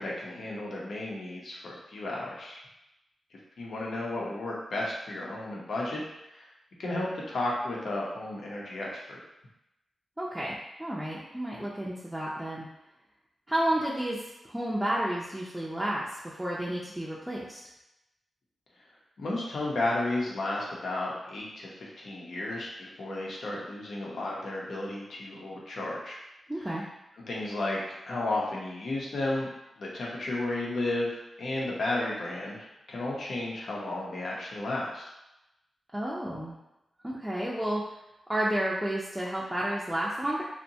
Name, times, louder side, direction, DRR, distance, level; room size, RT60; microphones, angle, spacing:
voice 1, 0.0-2.6 3.6-6.0 6.3-6.5 6.8-9.2 19.2-26.2 27.3-27.8 28.1-29.5 29.8-31.1 31.4-35.0, left 2 dB, 75° left, -4 dB, 0.7 m, -33 dB
voice 2, 10.2-10.5 10.8-12.7 13.5-14.2 14.4-17.6 26.5-26.8 35.9-36.5 37.0-37.8 38.3-40.4, right 1 dB, 10° right, -6 dB, 0.4 m, -31 dB
2.7 x 2.1 x 2.7 m, 0.91 s
cardioid pair, 55°, 0 cm